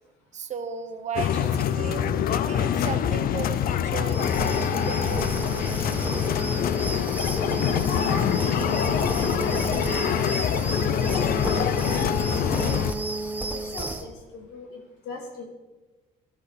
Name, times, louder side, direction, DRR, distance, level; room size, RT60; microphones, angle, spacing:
voice 1, 0.3-5.3, right 6 dB, 45° right, 8 dB, 1.3 m, -35 dB
sound 1, 1.2-12.9, left 9 dB, 60° left, 0.7 m, -25 dB
sound 2, 4.1-14.1, right 2 dB, 10° right, 1.3 m, -31 dB
voice 2, 7.9-13.0 13.5-15.4, left 3 dB, 85° left, 0 dB, 3.3 m, -39 dB
14.0 x 12.5 x 4.2 m, 1.1 s
cardioid pair, 110°, 17 cm